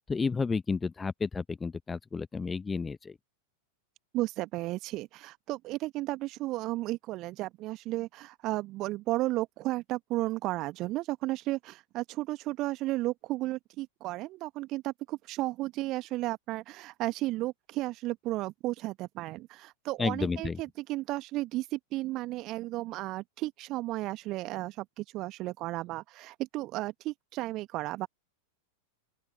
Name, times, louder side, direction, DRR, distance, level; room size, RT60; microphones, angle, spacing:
voice 1, 0.0-3.2 20.0-20.6, left 4 dB, 15° left, 1.1 m, -31 dB
voice 2, 4.1-28.1, right 18 dB, 40° right, 1.5 m, -34 dB
open air
figure-of-eight pair, 90°, 0 cm